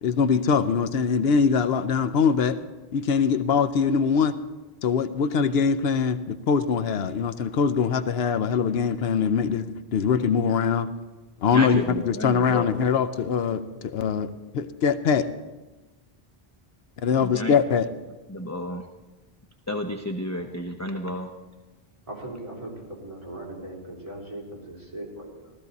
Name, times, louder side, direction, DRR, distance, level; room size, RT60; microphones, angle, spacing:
voice 1, 0.0-2.6 2.9-4.4 4.8-10.9 11.4-15.3 17.0-17.9, left 6 dB, 80° left, 11 dB, 0.9 m, -23 dB
voice 2, 11.5-11.8 12.1-12.7 17.3-17.5 18.3-18.8 19.7-21.3, left 1 dB, 20° left, 4 dB, 0.6 m, -30 dB
voice 3, 22.1-25.5, right 1 dB, 35° right, -3 dB, 3.4 m, -39 dB
15.5 x 13.5 x 4.1 m, 1.1 s
omnidirectional pair, 1.0 m